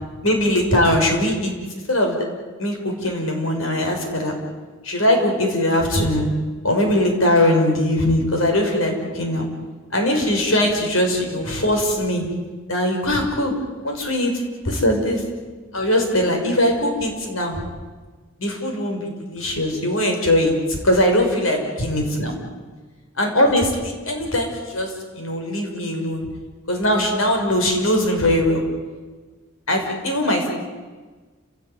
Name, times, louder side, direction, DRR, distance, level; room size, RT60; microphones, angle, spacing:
voice 1, 0.2-1.5 1.9-2.3 2.6-4.4 4.8-6.3 6.6-9.4 9.9-12.2 12.7-13.5 13.8-14.3 14.6-15.2 15.7-17.6 18.4-22.3 23.2-26.3 26.7-28.6 29.7-30.5, left 1 dB, 85° left, 3 dB, 6.0 m, -20 dB
30.0 x 17.5 x 9.6 m, 1.4 s
head